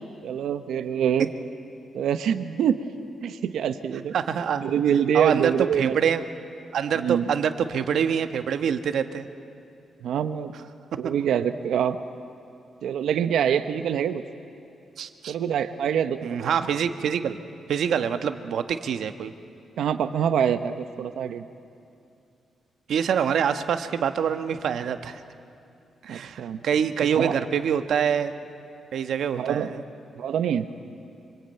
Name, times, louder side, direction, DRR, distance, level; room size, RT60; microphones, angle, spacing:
voice 1, 0.2-1.3 1.9-2.8 3.2-4.1 4.6-6.0 6.9-7.2 10.0-10.5 11.0-12.0 12.8-14.2 15.3-16.6 19.8-21.4 26.1-26.6 27.1-27.4 29.3-29.7 30.2-30.7, right 8 dB, 90° right, 10 dB, 0.9 m, -25 dB
voice 2, 4.1-4.7 5.1-6.2 6.7-9.3 15.0-15.3 16.2-17.4 17.7-19.3 22.9-25.2 26.0-28.3 28.9-29.8, right 7 dB, 70° right, 9 dB, 1.2 m, -25 dB
25.5 x 25.0 x 9.0 m, 2.6 s
wide cardioid pair, 155°, 0 cm